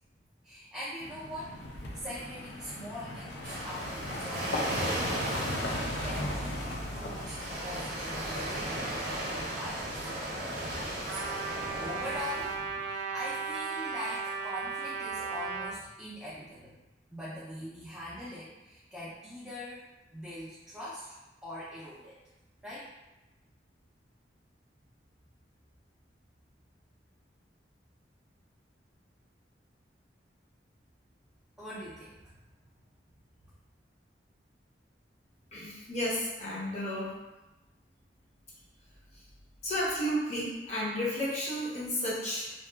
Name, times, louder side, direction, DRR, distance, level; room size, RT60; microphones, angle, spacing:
voice 1, 0.4-1.6 1.9-5.2 5.7-10.0 11.1-12.5 12.8-16.8 17.1-19.8 20.1-21.2 21.4-22.1 22.6-22.9 31.6-32.3 33.4-33.5, equal, 5° right, -10 dB, 0.4 m, -42 dB
sound 1, 1.0-12.8, left 1 dB, 70° left, 0.4 m, -39 dB
Waves surf, 3.4-12.5, right 1 dB, 50° right, 0.6 m, -36 dB
Trumpet, 11.1-15.7, right 5 dB, 90° right, 0.3 m, -36 dB
voice 2, 35.5-37.1 39.1-39.3 39.6-42.5, equal, 40° left, -7 dB, 0.7 m, -32 dB
2.7 x 2.3 x 2.2 m, 1.0 s
head